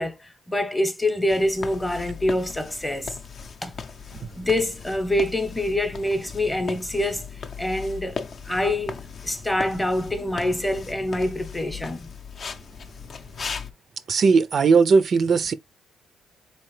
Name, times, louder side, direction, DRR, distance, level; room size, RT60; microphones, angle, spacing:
voice 1, 0.0-3.1 3.6-3.7 4.4-7.3 7.6-8.2 8.5-9.0 9.2-12.1, left 1 dB, 10° left, 0.7 m, -25 dB
sound 1, 1.3-13.7, left 5 dB, 50° left, 0.5 m, -37 dB
voice 2, 14.1-15.5, right 5 dB, 50° right, 0.3 m, -18 dB
3.8 x 2.8 x 3.1 m
cardioid pair, 90°, 0 cm